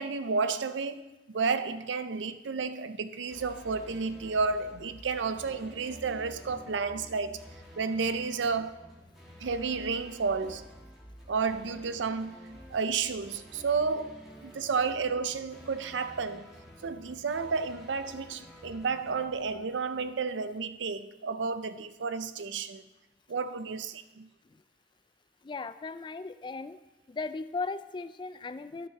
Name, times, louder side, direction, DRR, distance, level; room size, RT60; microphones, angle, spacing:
voice 1, 0.0-7.4 7.8-8.9 9.4-10.7 11.3-16.5 16.8-22.8 23.3-24.3, right 4 dB, 90° right, 0.5 m, -31 dB
sound 1, 3.3-20.3, equal, ahead, 1.5 m, -51 dB
voice 2, 25.4-26.8 27.1-28.9, left 4 dB, 25° left, 0.3 m, -37 dB
12.5 x 6.1 x 4.0 m
head